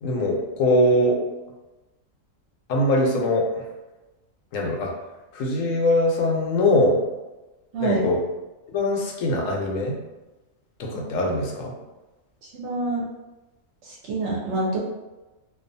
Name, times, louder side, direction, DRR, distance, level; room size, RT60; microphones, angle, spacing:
voice 1, 0.0-1.2 2.7-3.5 4.5-4.9 5.3-7.0 7.8-8.2 8.7-9.9 10.8-11.7, left 1 dB, 75° left, 0 dB, 0.9 m, -22 dB
voice 2, 12.4-13.0 13.8-14.8, right 3 dB, 65° right, -3 dB, 0.8 m, -26 dB
2.4 x 2.3 x 2.5 m, 1.1 s
omnidirectional pair, 1.4 m